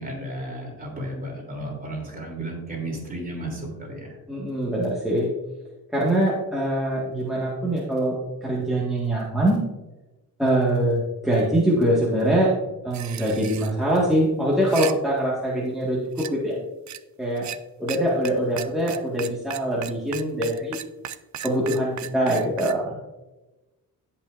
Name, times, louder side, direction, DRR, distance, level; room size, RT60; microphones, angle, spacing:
voice 1, 0.0-4.2, right 1 dB, 25° right, -1 dB, 3.2 m, -33 dB
voice 2, 4.3-5.3 5.9-9.6 10.4-12.5 12.8-16.6 17.2-17.5 17.8-20.8 21.4-23.0, right 1 dB, ahead, -7 dB, 1.8 m, -23 dB
sound 1, 12.9-13.7 14.5-14.9 16.2-16.3 16.9-17.0 17.4-17.6 17.9-18.0 18.3-18.4 18.6-22.7, right 10 dB, 50° right, 0.5 m, -35 dB
17.0 x 5.7 x 2.6 m, 1.1 s
cardioid pair, 125°, 36 cm